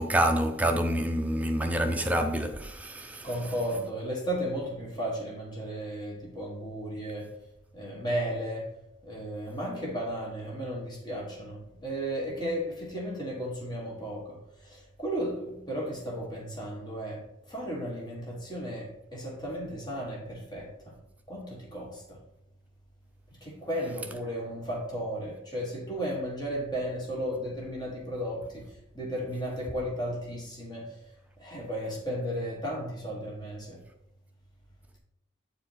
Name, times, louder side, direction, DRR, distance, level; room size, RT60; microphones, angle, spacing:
voice 1, 0.0-3.3, right 1 dB, 5° right, 0.5 m, -27 dB
voice 2, 3.2-7.3 7.7-8.7 9.0-21.0 21.3-22.2 23.4-31.0 31.4-33.8, equal, 20° left, 1.4 m, -34 dB
8.4 x 4.5 x 3.9 m
head